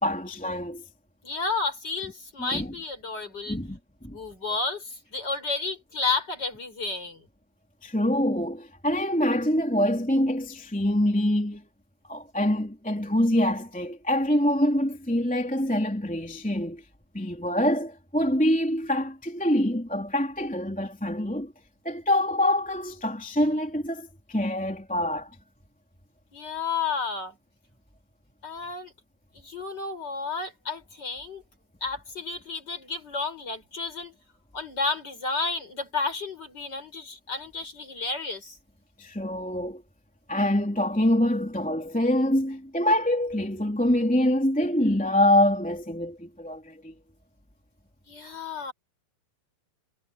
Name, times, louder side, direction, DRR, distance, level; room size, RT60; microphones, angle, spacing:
voice 1, 0.0-0.8 2.4-2.7 3.5-4.2 7.8-11.6 12.1-16.8 17.1-21.5 21.8-25.3 39.0-39.8 40.3-46.9, left 1 dB, ahead, 2.5 m, -25 dB
voice 2, 1.2-3.6 4.1-7.2 26.3-27.4 28.4-28.9 29.3-31.4 31.8-34.1 34.5-38.6 48.1-48.7, left 4 dB, 30° left, 5.8 m, -31 dB
omnidirectional pair, 4.0 m